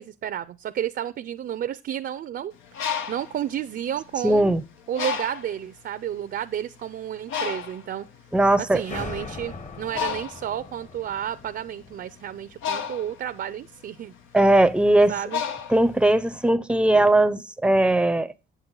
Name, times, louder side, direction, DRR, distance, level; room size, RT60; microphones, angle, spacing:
voice 1, 0.0-2.5 3.1-4.6 4.9-8.1 8.6-14.1 15.1-15.4, right 10 dB, 55° right, 0.5 m, -31 dB
Bird, 2.5-4.4 4.9-5.6 6.3-6.5 6.7-16.4, left 7 dB, 90° left, 1.0 m, -33 dB
voice 2, 4.2-4.6 8.3-8.8 14.3-15.1 15.7-18.3, right 1 dB, 5° right, 0.6 m, -19 dB
sound 1, 8.8-13.3, left 3 dB, 35° left, 1.2 m, -40 dB
8.2 x 7.6 x 3.8 m
cardioid pair, 90°, 20 cm